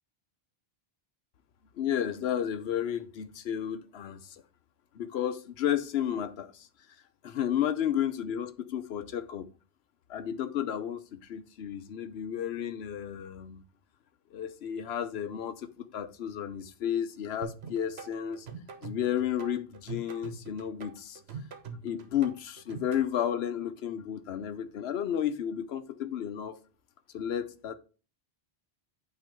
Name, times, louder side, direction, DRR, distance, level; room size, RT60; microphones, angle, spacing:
voice 1, 1.7-4.4 4.9-6.7 7.2-9.5 10.1-13.6 14.3-18.5 18.8-21.2 21.8-26.6 27.1-27.7, left 9 dB, 80° left, 0.9 m, -32 dB
sound 1, 17.4-23.0, right 4 dB, 80° right, 1.2 m, -43 dB
8.9 x 3.0 x 5.7 m
omnidirectional pair, 1.0 m